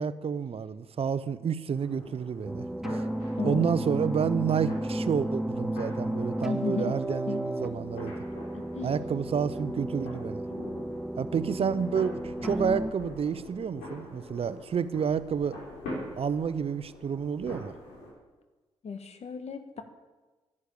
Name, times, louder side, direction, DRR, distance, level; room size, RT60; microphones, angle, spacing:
voice 1, 0.0-3.1 3.4-8.1 8.8-10.5 11.2-15.6 16.2-17.7, right 7 dB, 50° right, 14 dB, 0.9 m, -30 dB
sound 1, 1.7-18.1, left 1 dB, 85° left, 4.5 m, -44 dB
sound 2, 2.4-12.9, right 1 dB, 5° right, 0.7 m, -33 dB
voice 2, 3.4-3.8 6.4-7.0 7.3-7.4 8.5-8.9 18.8-19.8, left 5 dB, 55° left, 8 dB, 1.7 m, -35 dB
11.5 x 9.9 x 8.7 m, 1.2 s
hypercardioid pair, 45°, 13 cm